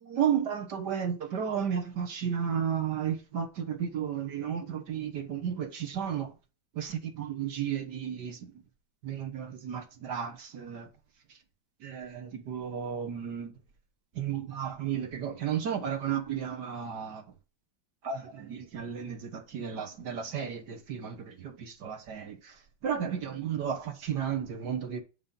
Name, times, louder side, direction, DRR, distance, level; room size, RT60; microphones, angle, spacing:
voice 1, 0.0-6.3 6.8-8.4 9.0-10.9 11.8-13.5 14.2-17.2 18.0-22.4 22.8-25.0, right 8 dB, 60° right, 1.6 m, -33 dB
8.7 x 3.8 x 5.3 m
omnidirectional pair, 2.2 m